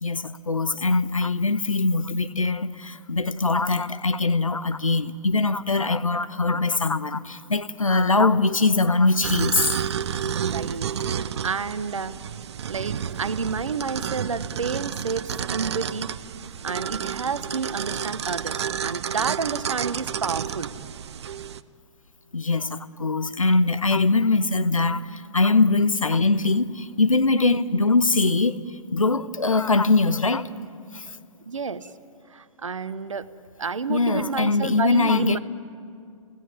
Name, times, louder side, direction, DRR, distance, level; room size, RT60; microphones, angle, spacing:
voice 1, 0.0-9.7 22.3-28.6 28.9-30.5 30.9-31.1 33.9-35.4, left 3 dB, 80° left, 1.0 m, -22 dB
sound 1, 9.2-21.6, right 8 dB, 55° right, 0.7 m, -30 dB
voice 2, 10.3-12.2 12.7-16.1 16.6-20.7 31.5-31.9 32.3-33.3 33.6-35.4, right 5 dB, 70° right, 1.1 m, -30 dB
29.5 x 17.5 x 9.5 m
figure-of-eight pair, 120°, 17 cm